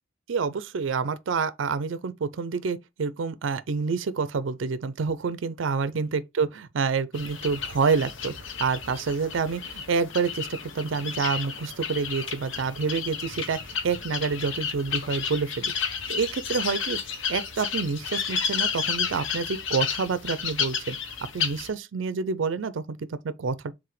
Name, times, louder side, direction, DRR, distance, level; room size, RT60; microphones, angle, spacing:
voice 1, 0.3-8.3 8.6-15.7 16.1-17.0 17.3-21.0 21.3-23.7, right 5 dB, 80° right, 0.5 m, -28 dB
sound 1, 7.1-21.7, left 6 dB, 90° left, 1.0 m, -32 dB
4.8 x 3.7 x 3.1 m
head